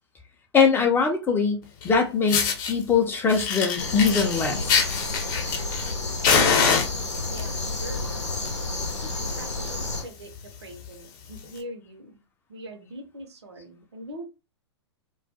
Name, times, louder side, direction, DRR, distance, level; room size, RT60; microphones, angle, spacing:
voice 1, 0.5-4.7, left 5 dB, 15° left, 0.4 m, -22 dB
Fire, 1.8-1.9 2.3-2.7 3.3-5.9 6.2-7.4 8.2-8.5 8.8-8.9 9.3-9.4 9.6-9.9 10.4-10.5 11.4-11.5, left 6 dB, 45° left, 0.7 m, -24 dB
sound 1, 3.8-10.0, left 2 dB, 90° left, 0.7 m, -31 dB
voice 2, 7.3-8.4 9.0-12.2 12.5-14.3, right 1 dB, 70° right, 0.7 m, -42 dB
2.3 x 2.1 x 2.7 m
figure-of-eight pair, 110°, 15 cm